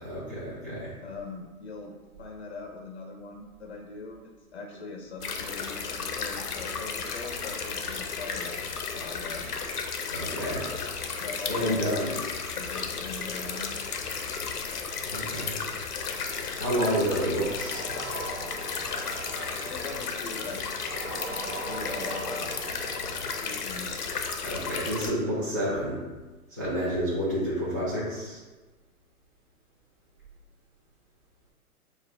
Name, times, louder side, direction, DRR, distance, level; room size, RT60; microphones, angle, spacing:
voice 1, 0.0-0.9 10.1-10.7 11.5-12.1 15.1-15.6 16.5-17.9 24.4-26.0 26.5-28.4, equal, 15° right, -12 dB, 0.3 m, -29 dB
voice 2, 1.0-4.2 4.5-9.5 11.2-12.3 12.6-13.7 19.7-20.6 21.1-22.5 23.4-24.0, left 3 dB, 50° left, 2 dB, 0.5 m, -41 dB
sound 1, 5.2-25.1, left 5 dB, 85° left, 0.7 m, -34 dB
sound 2, 16.0-23.4, right 2 dB, 70° right, 0.6 m, -41 dB
5.0 x 2.0 x 3.8 m, 1.2 s
hypercardioid pair, 130°, 45 cm